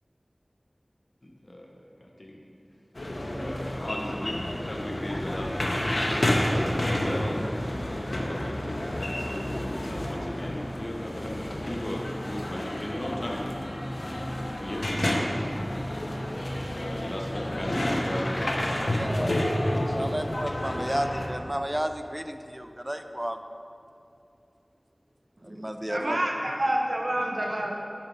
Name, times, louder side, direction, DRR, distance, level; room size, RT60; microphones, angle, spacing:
voice 1, 1.2-2.4 3.2-13.5 14.4-15.3 16.7-20.1, left 1 dB, 45° left, -1 dB, 0.9 m, -37 dB
sound 1, 2.9-21.3, left 1 dB, 70° left, 0.9 m, -30 dB
voice 2, 18.9-19.3 19.9-23.4 25.4-26.2, equal, 20° right, 7 dB, 0.4 m, -32 dB
voice 3, 25.9-27.7, right 1 dB, 60° right, 0 dB, 0.7 m, -28 dB
8.8 x 5.1 x 5.4 m, 2.6 s
wide cardioid pair, 40°, 0 cm